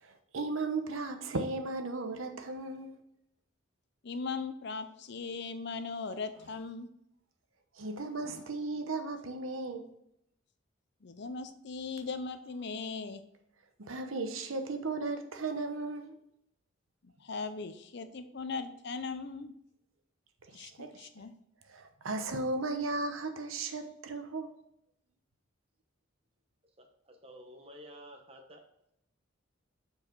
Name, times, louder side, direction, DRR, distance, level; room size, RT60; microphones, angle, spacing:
voice 1, 0.0-2.9 7.8-9.9 13.8-16.2 20.6-21.1 21.7-24.5, right 3 dB, 85° right, 1.0 m, -36 dB
voice 2, 4.0-6.9 8.2-8.4 11.0-13.2 17.0-19.5 20.5-21.3, left 4 dB, 55° left, 0.6 m, -39 dB
voice 3, 26.8-28.6, equal, 30° right, 1.0 m, -51 dB
7.4 x 4.7 x 4.6 m
head